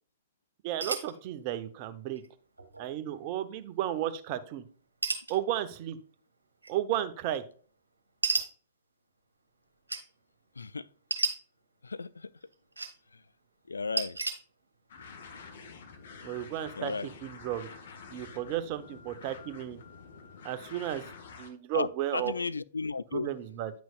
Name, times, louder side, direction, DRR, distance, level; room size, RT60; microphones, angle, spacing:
voice 1, 0.6-2.2 2.8-4.6 5.3-6.0 6.7-7.4 16.2-17.7 18.1-19.8 20.4-21.0 21.4-22.3 23.1-23.7, right 12 dB, 40° right, 0.8 m, -33 dB
sound 1, 0.8-1.1 2.2-2.3 2.6-2.9 5.0-5.4 6.6-6.7 8.2-8.4 9.9-10.0 11.1-11.3 12.4-12.9 14.0-14.3, right 3 dB, 80° right, 1.4 m, -31 dB
voice 2, 11.8-12.3 13.7-14.2 16.8-17.1 21.7-21.9 22.1-23.3, left 4 dB, 80° left, 0.3 m, -34 dB
sound 2, 14.9-21.5, left 5 dB, 60° left, 1.4 m, -48 dB
9.5 x 6.1 x 2.4 m
figure-of-eight pair, 105°, 0 cm